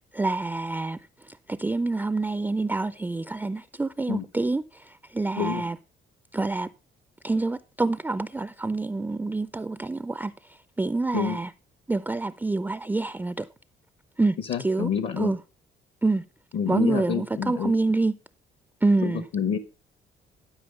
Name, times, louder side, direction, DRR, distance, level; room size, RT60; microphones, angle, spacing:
voice 1, 0.1-1.0 1.3-5.8 6.3-6.7 7.2-11.5 11.9-13.5 14.2-14.9 15.2-15.4 16.0-16.2 16.7-18.1 18.8-19.2, right 3 dB, 10° right, 0.4 m, -27 dB
voice 2, 14.5-15.3 16.5-17.7 19.0-19.6, left 7 dB, 65° left, 0.9 m, -28 dB
12.0 x 4.9 x 5.2 m
cardioid pair, 90°, 20 cm